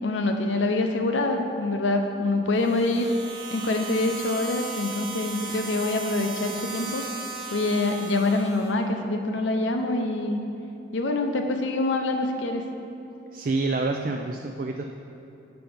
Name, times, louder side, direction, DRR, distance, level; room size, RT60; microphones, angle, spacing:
voice 1, 0.0-3.1 3.5-7.1 7.5-10.4 10.9-12.6, left 2 dB, 75° left, 4 dB, 0.7 m, -25 dB
sound 1, 2.5-8.7, right 4 dB, 25° right, 0.7 m, -36 dB
voice 2, 13.3-14.8, right 3 dB, 45° right, 3 dB, 0.3 m, -27 dB
7.0 x 5.9 x 5.1 m, 2.9 s
head